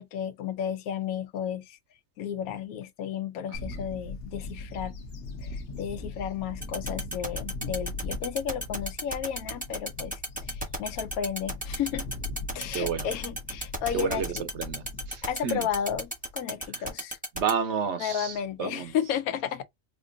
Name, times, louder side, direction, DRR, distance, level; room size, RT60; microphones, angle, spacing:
voice 1, 0.0-1.8 2.2-4.9 5.4-12.1 12.5-14.4 15.2-17.2 18.0-19.6, left 8 dB, 85° left, 1.1 m, -33 dB
Bird / Wind, 3.5-16.3, left 3 dB, 50° left, 0.9 m, -39 dB
voice 2, 3.5-3.8 12.7-13.1 13.9-15.7 16.7-16.8 17.3-18.9, right 7 dB, 60° right, 0.9 m, -31 dB
sound 1, 6.6-17.5, right 1 dB, 5° right, 0.8 m, -33 dB
4.4 x 2.5 x 2.6 m
omnidirectional pair, 1.5 m